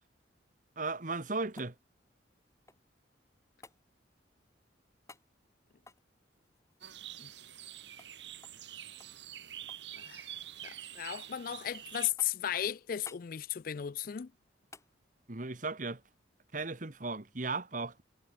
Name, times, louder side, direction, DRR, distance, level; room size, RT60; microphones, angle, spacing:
voice 1, 0.8-1.7 15.3-16.0 16.5-18.0, right 3 dB, 45° right, 1.4 m, -36 dB
sound 1, 1.6-3.0 3.6-3.8 5.1-5.3 5.8-7.7 8.0-8.1 8.4-8.7 9.0-9.9 10.2-10.8 11.2-11.7 12.2-12.5 13.0-13.3 14.7-14.9 17.3-17.4, left 3 dB, 15° left, 2.8 m, -57 dB
sound 2, 6.8-12.1, right 11 dB, 70° right, 5.3 m, -46 dB
voice 2, 10.6-14.3, left 10 dB, 50° left, 0.4 m, -35 dB
head